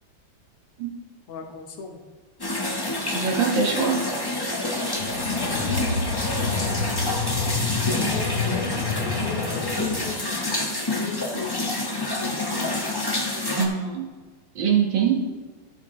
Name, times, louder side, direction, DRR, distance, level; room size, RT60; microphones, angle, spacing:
voice 1, 1.3-2.0 5.3-5.7 6.4-7.0 8.0-10.2 10.9-11.7 12.2-12.8, left 4 dB, 85° left, 3 dB, 2.1 m, -37 dB
sound 1, 2.4-13.7, left 2 dB, 20° left, 0.7 m, -28 dB
voice 2, 3.1-4.0 13.6-14.1 14.6-15.3, right 6 dB, 60° right, 0 dB, 2.1 m, -23 dB
sound 2, 5.0-10.0, left 4 dB, 70° left, 2.1 m, -28 dB
14.0 x 6.9 x 3.2 m, 1.4 s
omnidirectional pair, 2.4 m